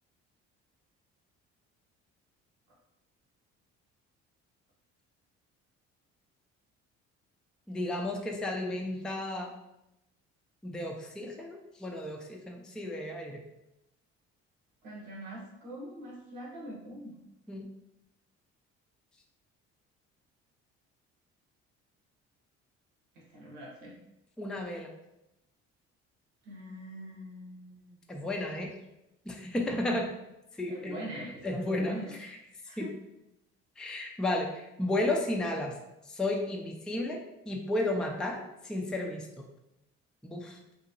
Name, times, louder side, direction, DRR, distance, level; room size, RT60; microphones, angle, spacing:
voice 1, 7.7-9.5 10.6-13.4 17.5-17.7 24.4-24.9 28.1-28.7 29.3-30.1 30.6-32.4 32.8-32.9 33.8-35.7 36.1-37.2 37.5-38.4 38.6-39.4 40.2-40.6, left 1 dB, ahead, 1 dB, 0.4 m, -33 dB
voice 2, 14.8-17.2 23.1-24.0 26.4-28.0 30.7-32.1 32.7-32.9, right 1 dB, 85° right, -3 dB, 1.0 m, -43 dB
2.9 x 2.8 x 2.6 m, 0.90 s
hypercardioid pair, 60°, 34 cm